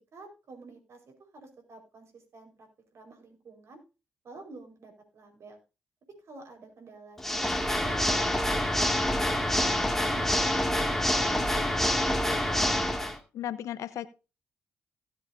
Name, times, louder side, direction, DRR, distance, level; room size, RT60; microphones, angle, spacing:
voice 1, 0.1-3.8 4.2-5.6 6.1-9.7 10.1-11.7 12.0-12.2, right 3 dB, 60° right, 4 dB, 4.6 m, -49 dB
Water / Mechanisms, 7.2-13.2, left 1 dB, 5° left, 2.2 m, -26 dB
voice 2, 13.3-14.2, left 11 dB, 70° left, 15 dB, 0.8 m, -35 dB
17.5 x 7.7 x 2.7 m, 0.30 s
hypercardioid pair, 45°, 5 cm